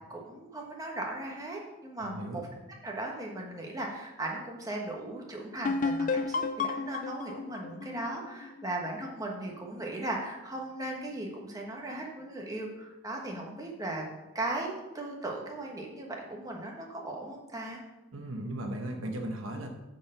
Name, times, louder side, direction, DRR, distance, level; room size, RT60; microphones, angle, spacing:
voice 1, 0.1-2.5 2.8-14.0 14.3-17.8, right 2 dB, 15° right, -1 dB, 1.3 m, -37 dB
voice 2, 2.0-2.4 18.1-19.7, right 1 dB, 65° right, 3 dB, 1.1 m, -36 dB
sound 1, 5.6-9.2, left 4 dB, 35° left, 0.4 m, -32 dB
9.4 x 4.6 x 6.6 m, 1.0 s
head